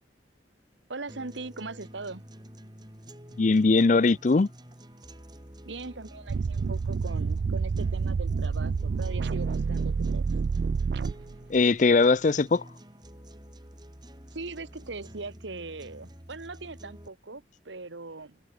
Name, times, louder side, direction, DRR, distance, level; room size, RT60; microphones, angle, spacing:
voice 1, 0.9-2.2 5.6-10.3 14.3-18.4, right 3 dB, 85° right, 1.5 m, -40 dB
sound 1, 1.1-17.1, equal, 25° right, 4.0 m, -48 dB
voice 2, 3.4-4.5 11.5-12.6, left 3 dB, 40° left, 0.4 m, -20 dB
sound 2, 6.3-11.6, right 5 dB, 65° right, 0.4 m, -28 dB
head